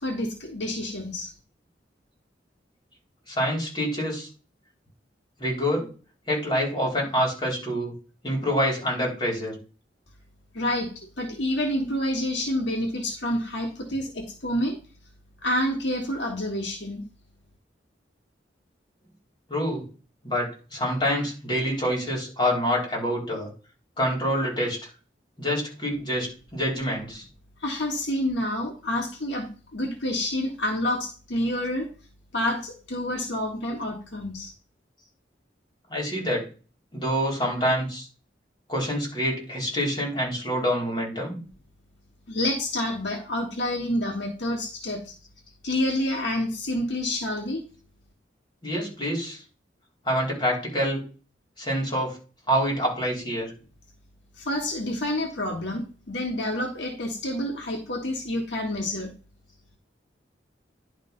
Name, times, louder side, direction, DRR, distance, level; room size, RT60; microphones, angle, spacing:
voice 1, 0.0-1.3 10.5-14.8 15.4-17.0 27.6-31.9 32.3-34.5 42.3-45.1 45.6-47.6 54.4-59.1, left 1 dB, 70° left, 1 dB, 1.7 m, -28 dB
voice 2, 3.3-4.3 5.4-5.9 6.3-7.9 8.2-9.6 19.5-19.9 20.2-23.5 24.0-24.8 25.4-27.2 35.9-36.5 36.9-38.1 38.7-41.4 48.6-49.4 50.1-51.0 51.6-52.2 52.5-53.5, equal, 25° left, -2 dB, 3.7 m, -26 dB
10.5 x 3.6 x 5.2 m, 0.35 s
head